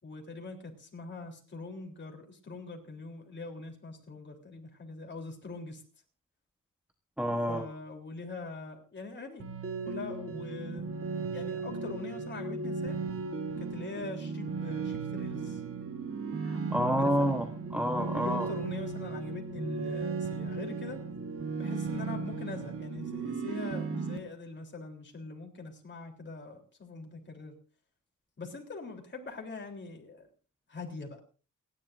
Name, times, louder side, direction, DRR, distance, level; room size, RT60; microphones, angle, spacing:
voice 1, 0.0-5.8 7.5-9.5 9.8-10.9 11.3-13.0 13.6-15.6 17.0-17.3 18.2-21.0 21.6-27.5 28.4-30.3 30.7-31.2, left 3 dB, 35° left, 2 dB, 3.5 m, -43 dB
voice 2, 7.2-7.7 16.4-17.5 17.7-18.5, equal, 5° right, 5 dB, 1.1 m, -29 dB
sound 1, 9.4-24.2, right 4 dB, 45° right, 1.5 m, -36 dB
29.0 x 11.0 x 2.6 m, 0.36 s
wide cardioid pair, 145°, 32 cm